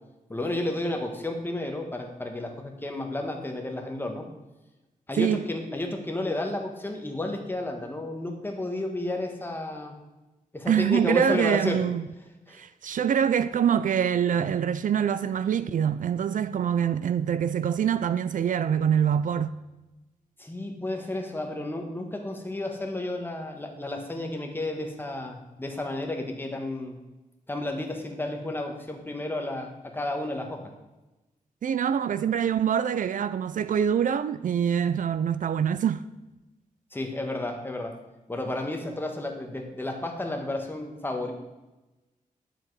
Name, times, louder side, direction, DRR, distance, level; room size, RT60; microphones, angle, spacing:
voice 1, 0.3-4.3 5.1-9.9 10.5-11.8 12.5-12.6 20.4-27.0 27.5-30.7 36.9-38.0 38.3-41.3, left 1 dB, 15° left, 1.4 m, -32 dB
voice 2, 10.7-12.1 12.5-19.6 31.6-36.0, right 8 dB, 70° right, 0.4 m, -25 dB
10.0 x 7.4 x 4.8 m
wide cardioid pair, 135°, 14 cm